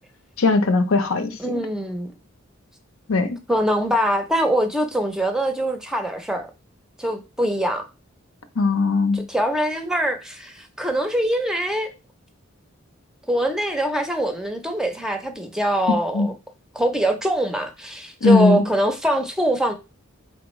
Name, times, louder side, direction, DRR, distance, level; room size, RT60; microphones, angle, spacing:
voice 1, 0.4-1.4 3.1-3.4 8.6-9.2 16.1-16.3 18.2-18.6, left 3 dB, 80° left, 0.7 m, -19 dB
voice 2, 1.4-2.1 3.5-6.5 7.0-7.9 9.1-11.9 13.3-16.3 16.7-19.7, equal, 5° right, 0.5 m, -23 dB
4.2 x 3.5 x 3.1 m
head